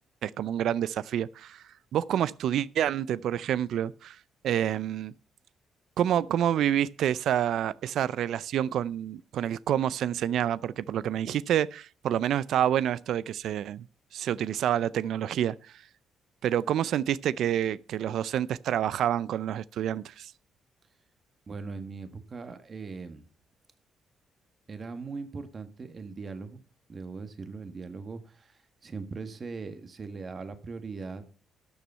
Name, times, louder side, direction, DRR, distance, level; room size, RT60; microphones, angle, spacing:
voice 1, 0.2-1.6 1.9-4.2 4.4-5.1 6.0-13.8 14.1-15.6 16.4-20.3, right 10 dB, 75° right, 0.4 m, -28 dB
voice 2, 21.5-23.3 24.7-26.6 26.9-31.2, right 4 dB, 40° right, 1.7 m, -40 dB
12.5 x 7.1 x 5.5 m
cardioid pair, 90°, 0 cm